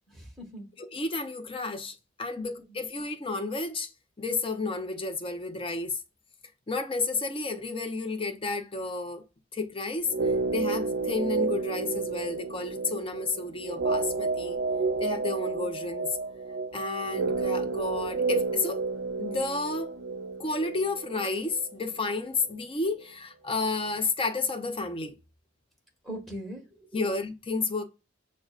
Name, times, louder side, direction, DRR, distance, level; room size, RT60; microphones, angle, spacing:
voice 1, 0.1-0.7 2.4-2.8 15.6-15.7 26.0-27.1, right 1 dB, ahead, 1.3 m, -41 dB
voice 2, 0.8-3.9 4.2-6.0 6.7-9.2 9.5-10.1 10.5-14.6 15.0-16.1 16.7-18.8 19.2-19.9 20.4-25.1 26.9-27.8, left 3 dB, 30° left, 0.5 m, -31 dB
sound 1, 10.0-22.2 22.4-22.5, right 3 dB, 60° right, 0.5 m, -31 dB
6.4 x 2.2 x 2.4 m
head